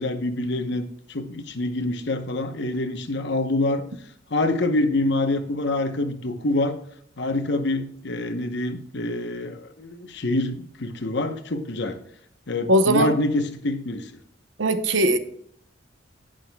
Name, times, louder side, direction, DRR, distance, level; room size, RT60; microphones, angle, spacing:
voice 1, 0.0-3.8 4.3-6.8 7.2-12.0 12.5-14.1, left 2 dB, 60° left, 7 dB, 1.0 m, -26 dB
voice 2, 12.7-13.1 14.6-15.2, right 1 dB, 75° right, 9 dB, 0.9 m, -19 dB
18.5 x 6.3 x 2.3 m, 0.65 s
head